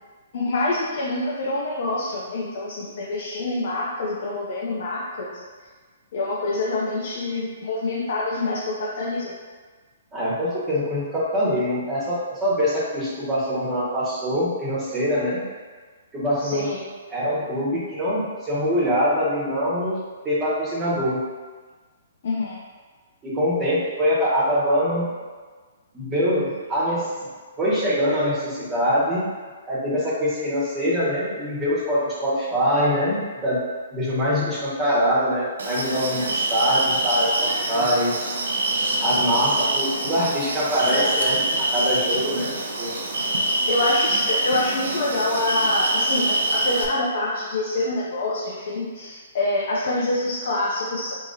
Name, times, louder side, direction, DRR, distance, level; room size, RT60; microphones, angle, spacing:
voice 1, 0.3-5.4 6.1-9.3 16.4-16.8 22.2-22.6 43.7-51.1, left 2 dB, 60° left, -5 dB, 0.6 m, -26 dB
voice 2, 10.1-15.4 16.1-16.7 17.1-21.2 23.2-25.1 25.9-27.0 27.6-29.3 29.6-33.6 33.9-38.1 39.0-42.9, equal, 20° right, -9 dB, 1.4 m, -24 dB
sound 1, 35.6-46.8, right 2 dB, 75° right, 0.5 m, -25 dB
3.7 x 2.9 x 2.6 m, 1.4 s
hypercardioid pair, 125°, 0 cm